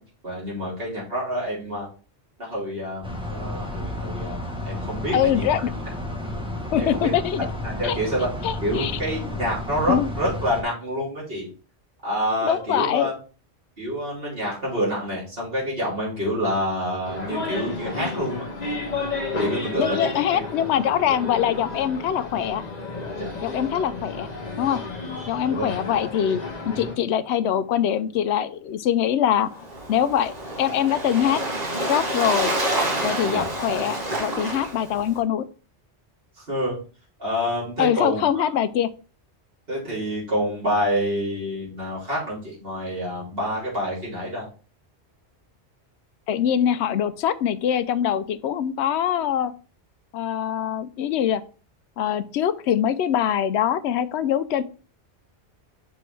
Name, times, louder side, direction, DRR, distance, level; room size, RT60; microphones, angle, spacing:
voice 1, 0.2-1.9 2.4-4.4 4.6-5.6 6.8-7.1 7.4-8.3 8.6-11.5 12.0-13.1 13.8-18.4 19.4-20.4 23.2-23.3 25.5-25.7 33.3-33.5 36.4-36.8 37.2-38.4 39.7-44.5, equal, 55° right, -6 dB, 3.3 m, -27 dB
sound 1, 3.0-10.6, left 1 dB, 5° right, 0.9 m, -32 dB
voice 2, 5.1-5.7 6.7-7.5 7.8-8.0 8.4-8.9 9.9-10.1 12.4-13.1 19.8-22.6 23.4-24.3 24.6-24.8 25.3-31.4 31.9-32.5 33.0-35.5 37.8-38.9 46.3-49.5 50.1-51.4 52.0-54.6, left 9 dB, 75° left, 14 dB, 0.8 m, -23 dB
sound 2, 17.0-27.0, left 3 dB, 40° left, 1.3 m, -32 dB
Waves surf, 29.5-35.2, right 1 dB, 35° right, 1.5 m, -28 dB
6.1 x 4.7 x 3.3 m, 0.37 s
omnidirectional pair, 1.2 m